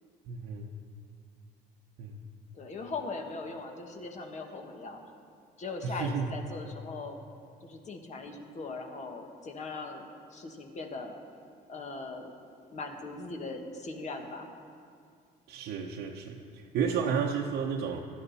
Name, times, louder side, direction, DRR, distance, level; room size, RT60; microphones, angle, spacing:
voice 1, 0.3-0.7 2.0-2.1 5.8-6.3 15.5-18.0, right 6 dB, 80° right, -2 dB, 1.0 m, -32 dB
voice 2, 2.5-5.0 5.6-7.2 7.6-10.0 10.3-11.2 11.7-12.3 12.7-14.5, left 3 dB, 45° left, 4 dB, 1.7 m, -40 dB
16.5 x 12.0 x 4.2 m, 2.3 s
cardioid pair, 110°, 17 cm